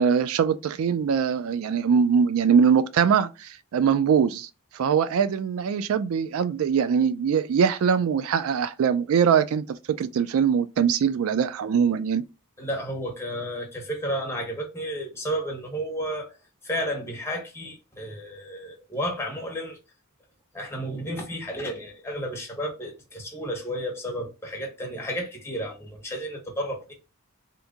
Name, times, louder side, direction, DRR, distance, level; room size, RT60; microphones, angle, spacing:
voice 1, 0.0-9.6 10.0-12.2, right 7 dB, 85° right, 0.3 m, -22 dB
voice 2, 12.6-16.4 16.6-19.8 20.5-26.9, equal, 10° left, 1.0 m, -32 dB
2.8 x 2.6 x 3.5 m
head